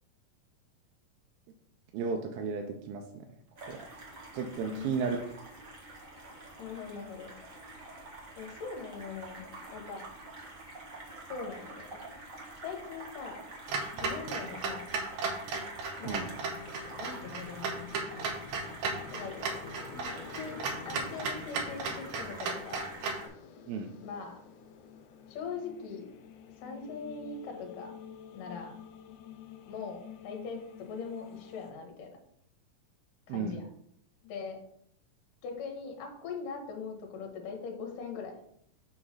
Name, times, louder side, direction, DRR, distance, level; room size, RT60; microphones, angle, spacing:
voice 1, 1.9-3.3 3.7-3.9 4.3-5.2 16.0-16.3 23.7-23.9 33.3-33.6, right 5 dB, 85° right, 3 dB, 2.5 m, -34 dB
sound 1, 3.6-23.3, right 2 dB, 50° right, 0.9 m, -47 dB
voice 2, 4.6-5.2 6.6-7.3 8.4-10.0 11.3-12.0 12.6-13.4 13.9-14.9 16.0-16.2 16.9-17.9 19.1-19.3 19.8-22.9 24.0-24.4 25.3-26.1 26.6-27.9 28.3-28.7 29.7-32.2 33.3-33.7 34.2-34.6 35.4-38.4, left 5 dB, 70° left, 3 dB, 2.7 m, -41 dB
Clock, 13.7-23.3, right 4 dB, 70° right, 1.9 m, -35 dB
sound 2, 16.1-31.7, left 7 dB, 90° left, 1.7 m, -49 dB
6.3 x 3.9 x 6.1 m, 0.70 s
omnidirectional pair, 4.3 m